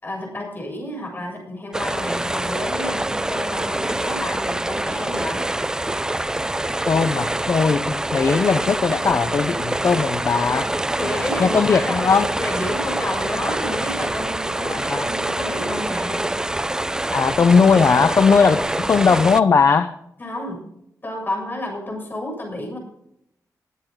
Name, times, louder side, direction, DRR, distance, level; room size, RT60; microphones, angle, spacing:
voice 1, 0.0-5.4 11.0-16.3 20.2-20.6 21.0-22.8, left 1 dB, 30° left, 1 dB, 7.1 m, -30 dB
sound 1, 1.7-19.4, right 1 dB, 10° right, 0.6 m, -25 dB
voice 2, 6.9-10.7 11.4-12.3 14.6-15.0 17.1-19.9, left 5 dB, 45° left, 11 dB, 0.7 m, -18 dB
21.0 x 9.7 x 3.8 m, 0.75 s
wide cardioid pair, 115°, 6 cm